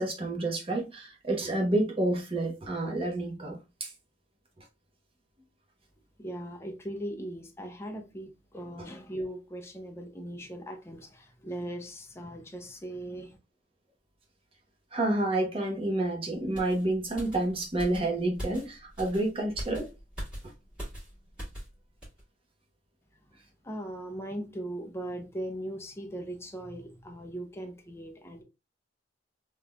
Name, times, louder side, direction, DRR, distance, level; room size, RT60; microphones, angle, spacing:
voice 1, 0.0-3.9 14.9-19.9, right 2 dB, 30° right, 1.0 m, -29 dB
voice 2, 6.2-13.4 23.6-28.4, right 1 dB, 15° left, 0.5 m, -39 dB
sound 1, 16.5-21.7 22.0-22.2, equal, 5° right, 1.8 m, -42 dB
3.5 x 2.9 x 2.3 m
head